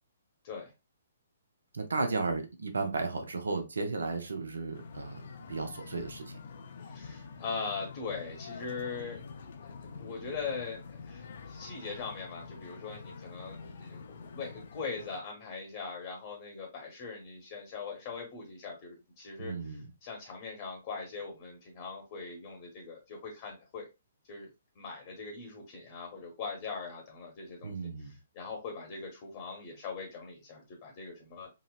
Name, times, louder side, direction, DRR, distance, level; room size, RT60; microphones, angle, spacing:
voice 1, 1.7-6.4 19.4-19.9 27.6-28.2, right 3 dB, 80° right, 0.5 m, -34 dB
sound 1, 4.7-15.2, left 5 dB, 60° left, 0.4 m, -46 dB
voice 2, 6.8-9.2 9.5-23.9 24.3-24.5 24.8-31.5, left 5 dB, 45° left, 0.9 m, -41 dB
3.9 x 2.0 x 2.3 m
figure-of-eight pair, 130°, 0 cm